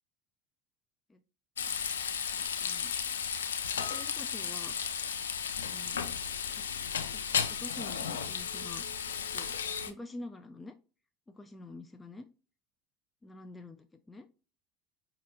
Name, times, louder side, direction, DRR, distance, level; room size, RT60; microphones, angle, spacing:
Frying (food), 1.6-9.9, left 7 dB, 85° left, 0.4 m, -34 dB
voice 1, 2.3-2.9 3.8-4.7 5.6-6.1 6.5-6.6 7.1-7.2 7.6-8.9 9.3-9.5 9.9-10.7 11.3-12.3 13.2-14.3, left 2 dB, 15° left, 8 dB, 0.4 m, -47 dB
5.0 x 2.8 x 2.7 m, 0.35 s
hypercardioid pair, 80°, 0 cm